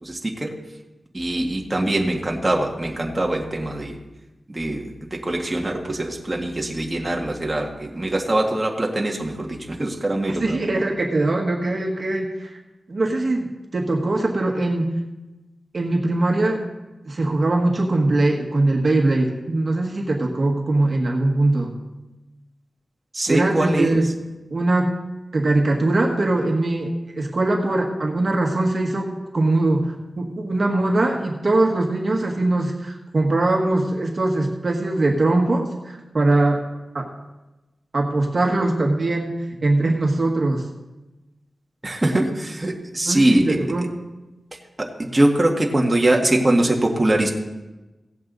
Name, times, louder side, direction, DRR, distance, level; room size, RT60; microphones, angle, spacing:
voice 1, 0.0-0.5 1.1-4.0 4.5-10.6 23.1-24.0 41.8-43.6 44.8-47.3, right 1 dB, 25° right, 0 dB, 1.7 m, -22 dB
voice 2, 10.4-12.5 12.9-15.0 15.7-16.7 17.1-21.7 23.3-24.1 24.5-24.9 25.3-36.6 36.9-37.1 37.9-40.6 43.0-43.9, right 2 dB, 50° right, 1 dB, 1.7 m, -21 dB
17.0 x 7.8 x 4.0 m, 1.1 s
wide cardioid pair, 70°, 0 cm